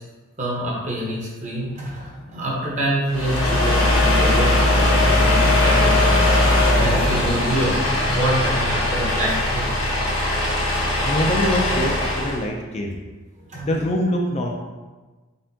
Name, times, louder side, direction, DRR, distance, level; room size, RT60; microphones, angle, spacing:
voice 1, 0.4-5.9 6.8-9.7 10.7-10.8 13.5-13.7, right 1 dB, 35° right, -3 dB, 0.9 m, -26 dB
sound 1, 3.1-12.4, left 1 dB, 85° left, 1.5 m, -19 dB
voice 2, 11.1-13.0 13.6-14.5, left 1 dB, 35° left, 1 dB, 0.4 m, -24 dB
4.1 x 3.7 x 2.7 m, 1.3 s
head